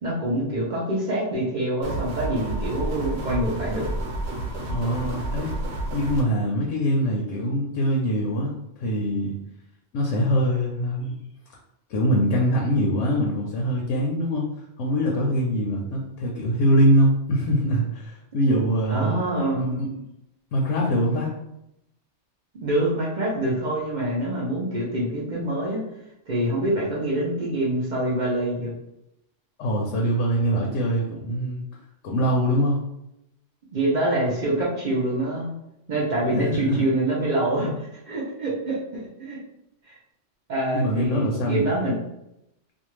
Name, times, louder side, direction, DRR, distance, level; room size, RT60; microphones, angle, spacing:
voice 1, 0.0-3.9 18.9-19.9 22.6-25.8 26.3-28.7 33.7-35.5 35.9-39.4 39.9-40.0 40.5-42.0, right 1 dB, 50° right, -4 dB, 0.6 m, -25 dB
sound 1, 1.8-6.2, right 1 dB, 70° right, 1.0 m, -30 dB
voice 2, 4.7-5.5 5.9-8.5 8.8-9.3 9.9-11.1 11.9-14.5 14.8-19.2 19.6-19.9 20.5-21.3 29.6-31.6 32.0-32.8 36.3-36.9 40.7-41.7, equal, 85° left, -2 dB, 0.9 m, -23 dB
2.5 x 2.3 x 3.0 m, 0.86 s
omnidirectional pair, 1.2 m